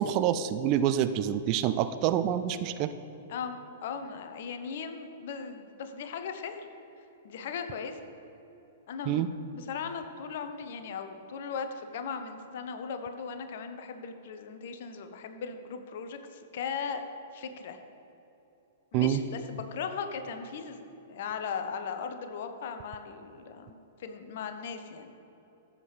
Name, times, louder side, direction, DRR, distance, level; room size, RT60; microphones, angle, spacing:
voice 1, 0.0-2.9 9.1-9.3 18.9-19.2, right 10 dB, 35° right, 11 dB, 0.4 m, -27 dB
voice 2, 3.3-6.7 7.2-8.0 8.9-9.3 9.5-17.0 17.3-17.8 18.9-20.8 21.1-25.1, left 6 dB, 50° left, 7 dB, 0.8 m, -38 dB
14.5 x 7.4 x 3.3 m, 3.0 s
figure-of-eight pair, 105°, 0 cm